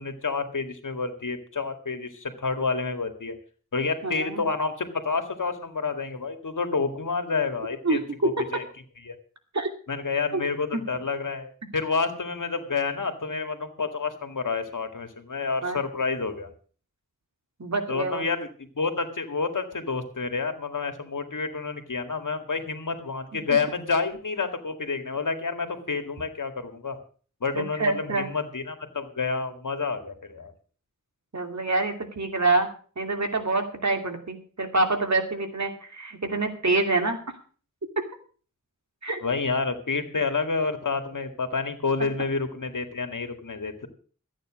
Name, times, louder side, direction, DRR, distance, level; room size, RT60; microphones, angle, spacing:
voice 1, 0.0-3.4 3.7-8.6 9.1-9.2 9.9-16.5 17.9-18.5 18.8-27.0 27.4-30.5 39.2-43.9, left 4 dB, 80° left, 7 dB, 2.0 m, -29 dB
voice 2, 4.0-4.5 7.8-8.0 9.5-9.7 10.3-10.4 10.7-10.8 15.6-15.8 17.6-18.3 23.5-23.6 27.5-28.3 31.3-32.7 33.0-37.2 39.0-39.2 42.0-42.1, right 3 dB, 60° right, 5 dB, 2.7 m, -26 dB
14.0 x 9.1 x 6.2 m, 0.42 s
wide cardioid pair, 50°, 31 cm